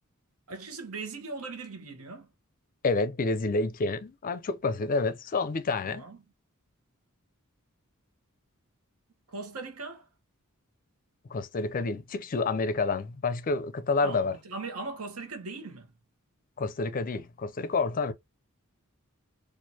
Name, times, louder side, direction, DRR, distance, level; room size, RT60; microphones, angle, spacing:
voice 1, 0.5-2.3 5.8-6.2 9.3-10.1 14.0-15.9, right 3 dB, 80° right, 1.1 m, -39 dB
voice 2, 2.8-6.1 11.3-14.3 16.6-18.1, left 3 dB, 40° left, 0.4 m, -29 dB
4.5 x 2.5 x 2.7 m
head